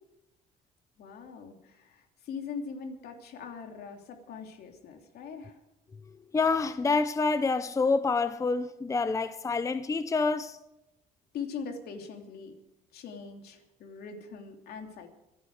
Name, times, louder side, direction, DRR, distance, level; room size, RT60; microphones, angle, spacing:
voice 1, 1.0-5.6 11.3-12.6 12.9-15.1, left 5 dB, 70° left, 3.0 m, -41 dB
voice 2, 6.3-10.6, left 4 dB, 20° left, 0.7 m, -27 dB
25.5 x 9.9 x 4.9 m
cardioid pair, 110°, 17 cm